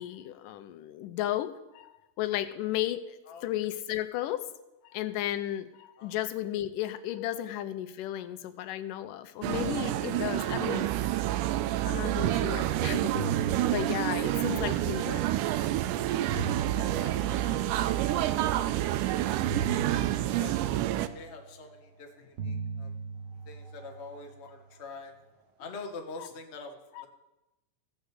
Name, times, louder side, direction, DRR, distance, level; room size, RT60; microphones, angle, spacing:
voice 1, 0.0-4.5 4.8-10.9 11.8-13.3 13.7-15.3 15.6-15.8 18.2-18.4 19.9-20.2 24.4-24.5 26.2-26.3 26.9-27.1, left 13 dB, 90° left, 11 dB, 2.3 m, -34 dB
sound 1, 9.4-21.1, right 14 dB, 85° right, 2.1 m, -28 dB
sound 2, 12.5-12.7 13.0-15.3 16.0-18.4 19.4-21.9 22.4-24.9, right 4 dB, 65° right, 1.2 m, -39 dB
voice 2, 16.8-18.7 19.0-19.3 19.6-20.0 20.4-22.9 23.5-25.1 25.6-27.1, left 4 dB, 65° left, 2 dB, 0.6 m, -46 dB
15.0 x 5.2 x 8.2 m, 0.96 s
omnidirectional pair, 3.7 m